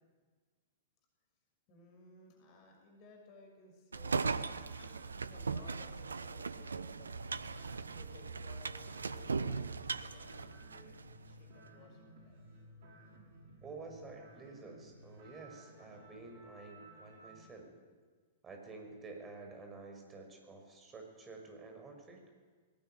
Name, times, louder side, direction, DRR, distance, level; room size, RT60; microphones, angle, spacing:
voice 1, 1.7-4.5 4.7-7.5 7.9-12.5, left 3 dB, 40° left, 2 dB, 6.3 m, -59 dB
sound 1, 3.9-11.1, right 4 dB, 75° right, 1.0 m, -39 dB
sound 2, 6.9-17.5, right 1 dB, 50° right, 6.7 m, -57 dB
voice 2, 13.6-17.7 18.4-22.2, right 3 dB, 20° right, 3 dB, 6.2 m, -50 dB
20.0 x 18.5 x 9.6 m, 1.5 s
figure-of-eight pair, 105°, 0 cm